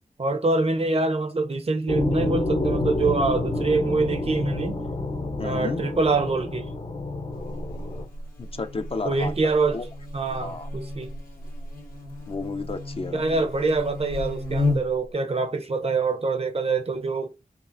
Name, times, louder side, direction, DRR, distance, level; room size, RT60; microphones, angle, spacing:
voice 1, 0.2-4.8 5.4-6.7 9.0-9.8 10.1-11.1 13.1-17.4, right 3 dB, 45° right, 0.6 m, -25 dB
sound 1, 1.9-8.0, left 2 dB, 60° left, 0.9 m, -28 dB
voice 2, 5.4-5.8 8.4-9.9 10.4-10.7 12.3-13.4, left 3 dB, 40° left, 0.4 m, -32 dB
Buzz, 7.3-15.1, left 2 dB, 80° left, 1.2 m, -33 dB
5.3 x 2.4 x 2.5 m
cardioid pair, 45°, 14 cm